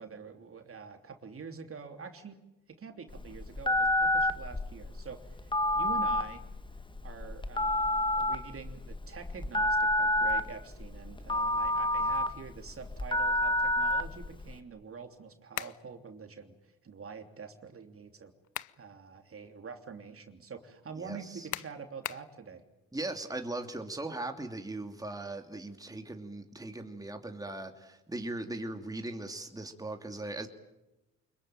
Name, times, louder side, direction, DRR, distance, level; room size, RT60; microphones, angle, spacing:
voice 1, 0.0-6.4 7.0-18.3 18.8-22.6, right 5 dB, 40° right, 3.2 m, -46 dB
Telephone, 3.1-14.5, left 1 dB, 15° left, 1.9 m, -29 dB
sound 1, 15.5-15.8 18.2-18.8 19.3-19.4 21.5-22.3, left 14 dB, 65° left, 0.8 m, -39 dB
voice 2, 21.0-21.5 22.9-30.5, right 2 dB, 10° right, 2.8 m, -39 dB
25.5 x 22.0 x 9.1 m
supercardioid pair, 65°, 32 cm